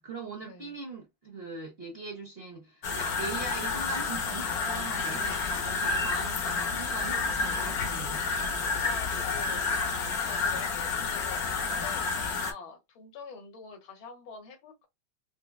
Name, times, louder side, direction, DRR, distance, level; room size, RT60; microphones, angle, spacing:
voice 1, 0.0-8.3, right 3 dB, 40° right, 1.0 m, -40 dB
sound 1, 2.8-12.5, left 4 dB, 60° left, 1.1 m, -30 dB
voice 2, 5.0-5.6 8.8-14.9, left 5 dB, 75° left, 2.0 m, -46 dB
5.0 x 2.3 x 2.3 m
omnidirectional pair, 2.2 m